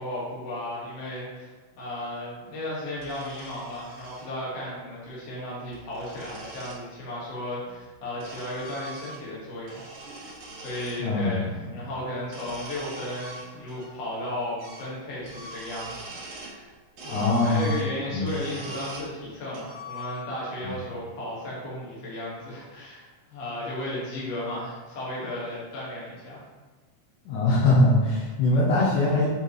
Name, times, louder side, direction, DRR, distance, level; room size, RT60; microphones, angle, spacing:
voice 1, 0.0-1.5 1.8-16.7 17.0-26.4, left 1 dB, 55° left, -7 dB, 2.7 m, -35 dB
sound 1, 3.0-4.3 5.5-6.8 7.7-9.4 9.6-11.0 12.2-13.9 14.1-14.2 14.6-14.9 15.2-16.6 17.0-19.1 19.5-20.5, right 1 dB, 70° right, 1.1 m, -42 dB
voice 2, 11.0-11.4 17.1-17.7 18.1-18.3 20.6-20.7 27.3-29.3, left 2 dB, 75° left, -6 dB, 2.4 m, -22 dB
6.8 x 4.5 x 3.1 m, 1.3 s
omnidirectional pair, 3.7 m